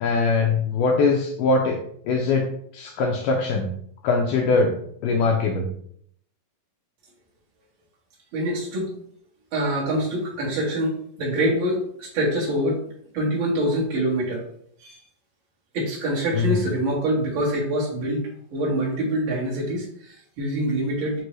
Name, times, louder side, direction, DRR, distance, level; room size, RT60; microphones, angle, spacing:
voice 1, 0.0-1.8 2.1-3.7 4.0-4.8 5.0-5.7 16.3-16.6, left 4 dB, 85° left, 0 dB, 1.8 m, -22 dB
voice 2, 8.3-8.9 9.5-12.8 13.1-14.4 14.8-15.0 15.7-21.2, right 1 dB, 55° right, -5 dB, 1.5 m, -25 dB
6.1 x 2.6 x 3.1 m, 0.66 s
omnidirectional pair, 4.2 m